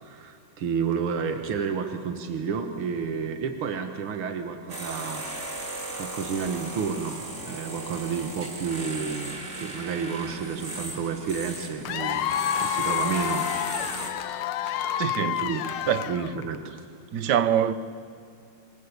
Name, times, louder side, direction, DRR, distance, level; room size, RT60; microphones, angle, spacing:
voice 1, 0.0-5.3 6.0-13.5 14.6-14.8 15.3-15.7 16.1-16.8 17.1-17.3, right 6 dB, 80° right, 2.3 m, -31 dB
sound 1, 4.7-14.1, right 2 dB, 35° right, 3.0 m, -37 dB
Keyboard (musical), 8.4-16.5, right 4 dB, 60° left, 3.9 m, -49 dB
Cheering / Applause / Crowd, 11.9-16.6, left 10 dB, 90° left, 1.7 m, -29 dB
voice 2, 15.0-15.4 15.9-16.1 17.1-17.7, right 9 dB, 60° right, 1.3 m, -24 dB
27.5 x 24.0 x 8.3 m
omnidirectional pair, 2.3 m